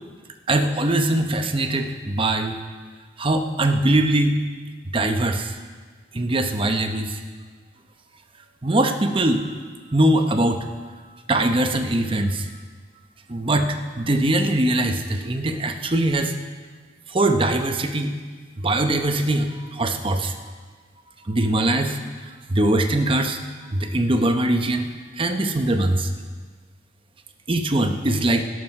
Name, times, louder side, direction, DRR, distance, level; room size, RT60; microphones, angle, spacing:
voice 1, 0.5-2.6 3.2-4.4 4.9-5.5 6.1-7.1 8.6-9.5 9.9-10.6 11.3-12.5 13.3-16.3 17.1-18.2 18.6-20.3 21.3-22.0 22.5-23.4 23.7-24.9 25.2-26.1 27.5-28.4, right 1 dB, 30° right, 7 dB, 0.8 m, -21 dB
12.5 x 11.5 x 5.4 m, 1.5 s
head